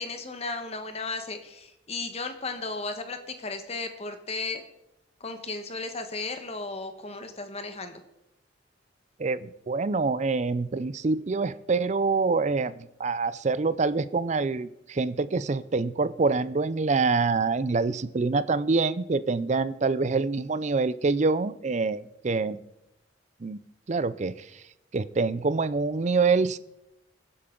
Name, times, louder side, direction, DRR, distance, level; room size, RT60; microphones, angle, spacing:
voice 1, 0.0-4.6 5.2-8.0, left 3 dB, 35° left, 7 dB, 1.2 m, -35 dB
voice 2, 9.2-22.6 23.4-23.6 23.9-24.5 24.9-26.6, right 4 dB, 40° right, 16 dB, 0.5 m, -26 dB
21.5 x 7.9 x 3.8 m, 0.88 s
head